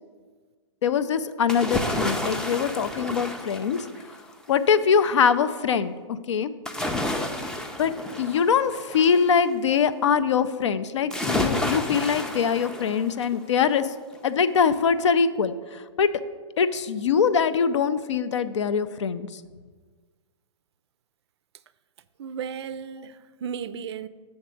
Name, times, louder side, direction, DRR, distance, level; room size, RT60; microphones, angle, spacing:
voice 1, 0.8-3.8 4.5-6.5 7.8-7.9 8.2-13.9 14.2-16.1 16.6-19.4, left 6 dB, 70° left, 0.5 m, -23 dB
sound 1, 1.5-4.3 6.7-9.3 11.1-13.4 13.8-13.9, left 1 dB, 5° left, 0.4 m, -30 dB
voice 2, 22.2-24.1, right 7 dB, 60° right, 0.4 m, -34 dB
7.2 x 3.5 x 6.2 m
hypercardioid pair, 115°, 16 cm